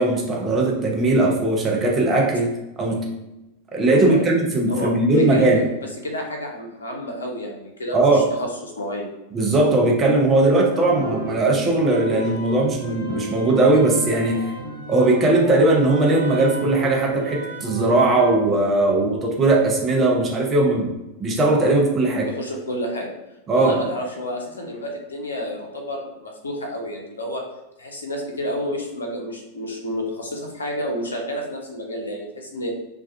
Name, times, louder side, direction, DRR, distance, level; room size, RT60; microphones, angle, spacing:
voice 1, 0.0-2.5 2.8-3.1 3.7-5.6 7.9-8.2 9.3-14.5 14.9-20.9 21.2-22.3 23.5-23.8, right 2 dB, 20° right, -2 dB, 0.6 m, -19 dB
voice 2, 3.9-4.2 4.7-5.7 6.0-8.5 8.8-9.0 22.2-23.1 23.5-27.4 27.8-32.7, equal, 70° left, 2 dB, 0.5 m, -30 dB
sound 1, 10.7-18.3, right 2 dB, 80° right, 0.6 m, -34 dB
2.3 x 2.2 x 2.5 m, 0.97 s
figure-of-eight pair, 90°, 0 cm